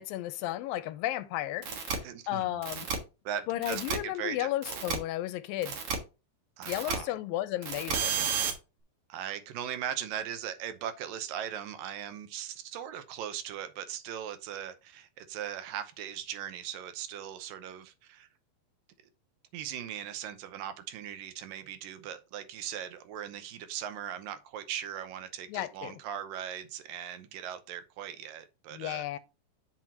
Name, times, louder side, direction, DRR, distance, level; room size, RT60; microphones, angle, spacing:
voice 1, 0.0-2.9 3.5-5.8 6.7-8.3 25.5-25.9 28.7-29.2, left 14 dB, 85° left, 2.3 m, -34 dB
sound 1, 1.6-2.0 2.6-3.0 3.6-4.0 4.6-5.0 5.6-6.0 6.6-7.0 7.6-8.5, right 6 dB, 50° right, 1.9 m, -31 dB
voice 2, 1.7-2.6 3.3-4.8 6.6-7.1 9.1-18.3 19.5-29.2, right 9 dB, 80° right, 2.4 m, -39 dB
8.9 x 6.0 x 2.9 m
omnidirectional pair, 4.1 m